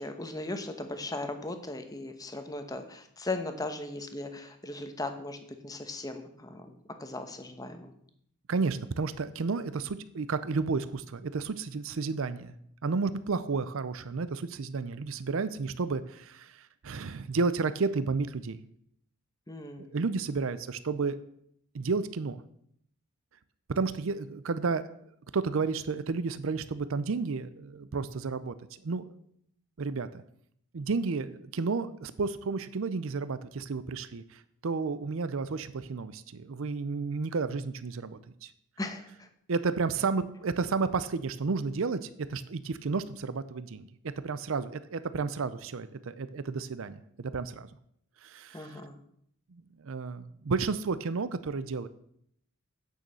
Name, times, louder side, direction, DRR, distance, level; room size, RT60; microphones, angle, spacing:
voice 1, 0.0-7.9 19.5-19.9 38.8-39.3 48.5-49.0, left 2 dB, 15° left, 7 dB, 1.0 m, -38 dB
voice 2, 8.5-12.5 12.8-18.6 19.8-21.2 21.7-22.4 23.7-25.0 25.3-29.1 29.8-30.2 30.7-38.5 39.5-47.7 48.2-48.8 49.5-51.9, right 4 dB, 65° right, 13 dB, 0.5 m, -32 dB
9.2 x 6.4 x 6.8 m, 0.70 s
head